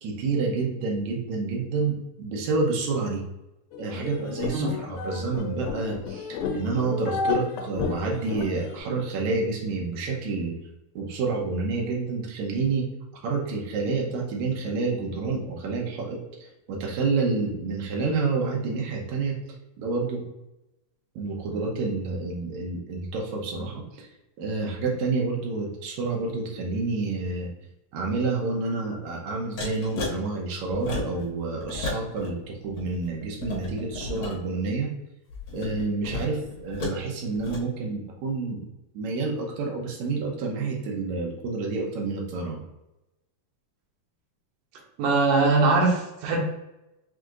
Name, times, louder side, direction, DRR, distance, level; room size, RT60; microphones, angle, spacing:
voice 1, 0.0-3.2 3.8-10.5 11.0-12.9 13.2-19.4 19.8-20.2 21.2-24.1 24.4-27.5 27.9-34.9 35.5-38.6 38.9-42.6, right 3 dB, 70° right, -1 dB, 1.8 m, -29 dB
sound 1, 3.7-8.8, left 5 dB, 80° left, 2.4 m, -32 dB
sound 2, 29.6-30.1 30.7-31.3 31.6-32.3 32.6-34.4 35.3-37.0 37.3-37.6, left 3 dB, 60° left, 2.4 m, -34 dB
voice 2, 45.0-46.4, right 3 dB, 90° right, -1 dB, 1.5 m, -21 dB
6.1 x 2.7 x 2.5 m, 0.93 s
omnidirectional pair, 4.2 m